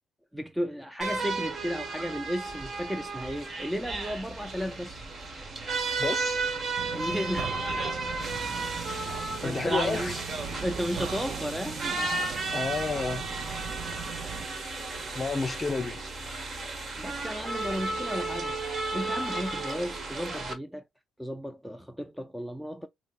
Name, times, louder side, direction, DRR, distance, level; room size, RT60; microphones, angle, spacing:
voice 1, 0.3-5.0 6.9-7.5 8.3-8.5 8.9-10.2 10.6-12.3 14.5-14.7 17.0-18.6 18.9-20.8 21.2-22.9, equal, 5° right, 0.4 m, -34 dB
sound 1, 1.0-20.5, right 3 dB, 40° right, 1.1 m, -33 dB
voice 2, 6.0-6.5 8.2-8.4 9.4-10.2 12.5-13.3 15.1-16.0, left 4 dB, 30° left, 0.7 m, -31 dB
sound 2, 6.8-14.5, right 7 dB, 60° right, 0.5 m, -40 dB
5.1 x 2.0 x 2.4 m
cardioid pair, 95°, 0 cm